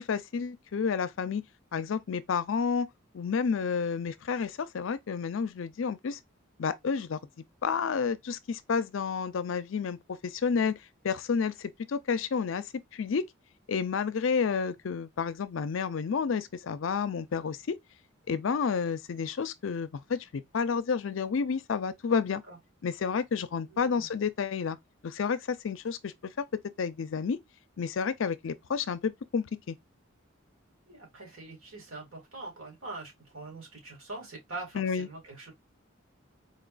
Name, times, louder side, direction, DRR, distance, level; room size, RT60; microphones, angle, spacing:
voice 1, 0.0-1.4 1.7-2.9 3.1-6.2 6.6-7.2 7.6-10.7 11.0-12.6 12.9-13.2 13.7-17.8 18.3-22.4 22.8-24.8 25.0-26.5 26.8-27.4 27.8-29.8 34.7-35.1, left 6 dB, 70° left, 0.4 m, -30 dB
voice 2, 23.7-24.1 30.9-35.5, right 2 dB, 85° right, 2.3 m, -43 dB
4.2 x 3.0 x 2.4 m
head